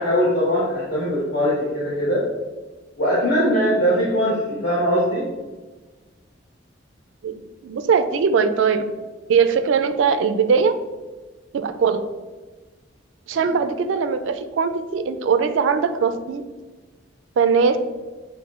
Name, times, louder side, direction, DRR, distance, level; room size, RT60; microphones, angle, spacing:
voice 1, 0.0-2.2 3.0-5.2, equal, 65° left, -9 dB, 1.2 m, -21 dB
voice 2, 7.6-8.8 9.3-10.7 11.5-12.0 13.3-16.4 17.4-17.8, right 6 dB, 80° right, 9 dB, 0.3 m, -20 dB
7.0 x 2.5 x 2.4 m, 1.3 s
head